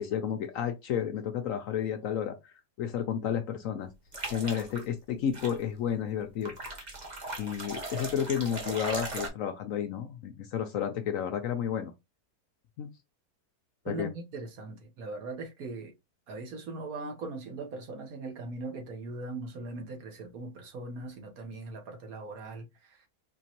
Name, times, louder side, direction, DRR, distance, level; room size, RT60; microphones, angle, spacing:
voice 1, 0.0-2.5 2.8-3.9 4.3-6.5 7.4-11.9 12.8-12.9 13.9-14.1, left 8 dB, 70° left, 0.8 m, -31 dB
sound 1, 4.1-4.9 5.3-5.6 6.5-9.3, right 2 dB, 35° right, 0.9 m, -38 dB
voice 2, 13.9-15.9 16.3-23.1, right 3 dB, 65° right, 1.4 m, -40 dB
4.4 x 3.0 x 2.9 m
omnidirectional pair, 1.7 m